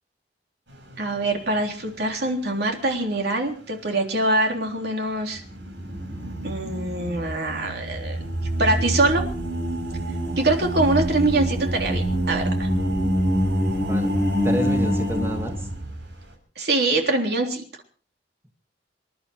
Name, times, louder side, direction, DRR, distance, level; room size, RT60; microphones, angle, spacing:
sound 1, 0.7-1.4 1.8-1.9 5.4-16.2, equal, 80° right, 6.1 m, -26 dB
voice 1, 1.0-5.4 6.4-8.2 8.6-9.2 10.4-12.7 16.6-17.6, right 2 dB, 65° right, 3 dB, 3.6 m, -24 dB
voice 2, 14.4-15.7, equal, 15° right, 3 dB, 2.2 m, -29 dB
26.5 x 11.5 x 4.5 m, 0.42 s
head